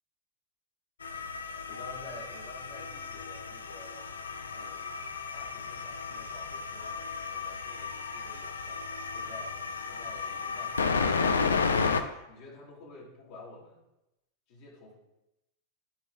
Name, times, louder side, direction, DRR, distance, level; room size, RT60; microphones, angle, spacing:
sound 1, 1.0-12.0, left 5 dB, 70° left, 0.4 m, -33 dB
voice 1, 1.7-4.1 4.5-5.0 5.3-7.0 7.3-9.6 9.9-13.8 14.5-14.9, left 2 dB, 45° left, -3 dB, 2.0 m, -50 dB
12.0 x 4.6 x 2.3 m, 0.92 s
figure-of-eight pair, 90°, 0 cm